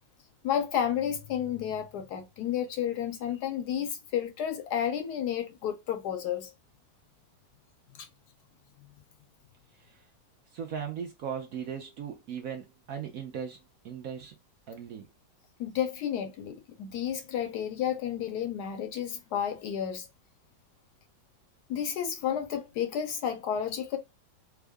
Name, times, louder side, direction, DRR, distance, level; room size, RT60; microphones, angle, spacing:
voice 1, 0.4-6.5 7.9-8.1 15.6-20.1 21.7-24.0, left 9 dB, 70° left, 1.0 m, -31 dB
voice 2, 10.5-14.4 14.7-15.1, right 7 dB, 65° right, 0.9 m, -38 dB
3.6 x 2.0 x 3.4 m
omnidirectional pair, 2.0 m